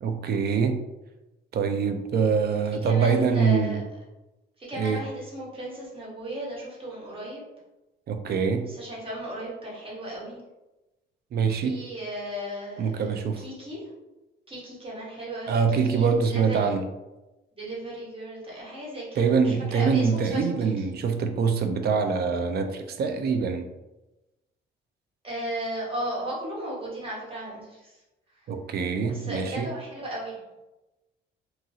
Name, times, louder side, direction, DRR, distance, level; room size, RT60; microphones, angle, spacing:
voice 1, 0.0-0.8 1.5-3.8 4.8-5.0 8.1-8.7 11.3-11.8 12.8-13.4 15.5-16.9 19.2-23.7 28.5-29.7, right 5 dB, 55° right, 7 dB, 0.4 m, -24 dB
voice 2, 2.8-3.8 4.6-7.4 8.6-10.4 11.5-12.9 13.2-13.8 14.5-16.8 17.6-20.8 25.2-28.0 29.1-30.4, right 1 dB, 25° right, -6 dB, 1.3 m, -36 dB
2.9 x 2.3 x 2.7 m, 1.0 s
cardioid pair, 90°, 20 cm